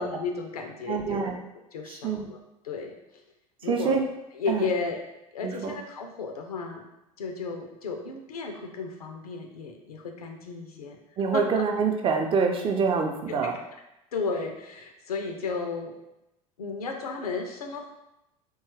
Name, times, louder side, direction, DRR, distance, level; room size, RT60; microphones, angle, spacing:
voice 1, 0.0-3.2 3.6-4.0 4.3-5.0 5.3-6.9 7.2-11.0 11.3-11.6 13.3-13.6 14.1-16.0 16.6-17.9, left 4 dB, 85° left, 3 dB, 0.4 m, -34 dB
voice 2, 0.9-1.3 2.0-2.2 3.7-4.0 4.5-4.6 5.4-5.7 11.2-13.5, right 5 dB, 30° right, 3 dB, 0.4 m, -25 dB
2.8 x 2.3 x 2.9 m, 0.89 s
figure-of-eight pair, 75°, 19 cm